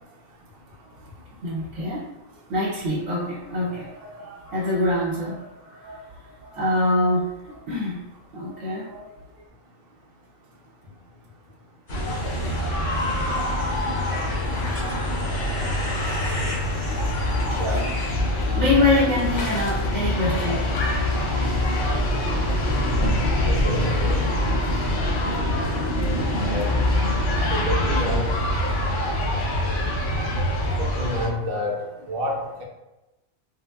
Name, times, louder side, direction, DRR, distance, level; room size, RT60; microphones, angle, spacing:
voice 1, 1.4-2.1 2.5-6.1 6.4-8.0 8.3-9.1 18.5-20.6, left 2 dB, 75° right, -7 dB, 1.1 m, -25 dB
sound 1, 11.9-31.3, left 1 dB, 60° left, 0.5 m, -24 dB
sound 2, 11.9-18.1, left 2 dB, 40° left, 1.7 m, -37 dB
voice 2, 23.5-24.2 24.8-25.4 26.5-26.7 27.5-28.3 30.8-32.6, equal, 55° right, -1 dB, 0.7 m, -29 dB
3.3 x 2.1 x 2.2 m, 1.0 s
omnidirectional pair, 1.4 m